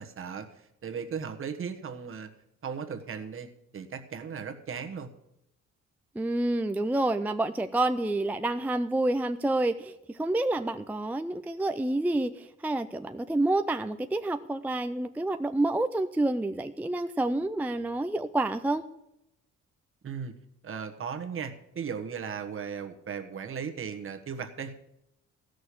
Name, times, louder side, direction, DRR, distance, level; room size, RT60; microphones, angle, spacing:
voice 1, 0.0-2.3 2.6-3.5 3.7-5.1 20.0-20.3 20.6-24.9, right 6 dB, 45° right, 6 dB, 1.3 m, -37 dB
voice 2, 6.2-18.8, right 2 dB, 5° right, 7 dB, 0.4 m, -28 dB
14.0 x 6.5 x 8.5 m, 0.85 s
cardioid pair, 120°, 29 cm